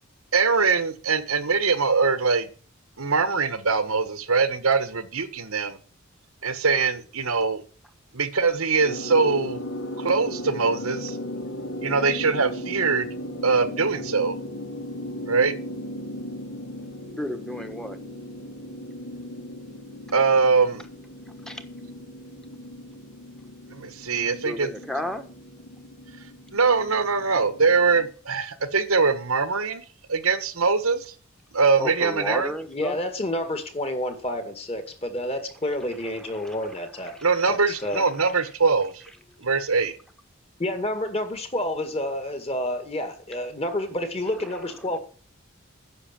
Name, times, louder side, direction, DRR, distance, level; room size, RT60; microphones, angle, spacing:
voice 1, 0.3-2.5 3.0-5.8 6.4-7.6 8.1-9.6 10.0-11.2 11.8-13.1 13.4-14.3 15.3-15.5 20.1-20.8 23.7-24.7 26.5-29.8 30.1-31.0 31.5-32.5 37.2-39.0 39.4-39.9, right 4 dB, 85° right, 1.4 m, -22 dB
sound 1, 8.8-28.1, left 1 dB, 75° left, 2.6 m, -37 dB
voice 2, 17.2-18.0 21.5-21.6 24.4-25.2 31.8-33.0 36.3-36.6 37.1-37.2, equal, 5° left, 1.2 m, -32 dB
voice 3, 32.7-37.2 37.5-38.0 40.6-45.0, left 1 dB, 30° left, 1.9 m, -29 dB
9.9 x 7.0 x 8.7 m
head